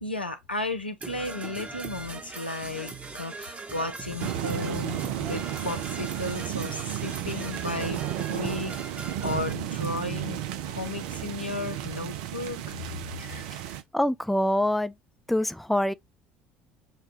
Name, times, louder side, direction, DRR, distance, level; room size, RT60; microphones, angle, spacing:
voice 1, 0.0-12.8 13.2-13.6, left 2 dB, 90° left, 0.6 m, -34 dB
Percussion / Brass instrument, 1.0-9.5, right 3 dB, 25° right, 1.0 m, -40 dB
sound 1, 4.2-13.8, right 12 dB, 65° right, 0.5 m, -33 dB
voice 2, 13.9-14.9 15.3-15.9, left 1 dB, ahead, 0.4 m, -25 dB
6.6 x 2.3 x 2.8 m
figure-of-eight pair, 60°, 5 cm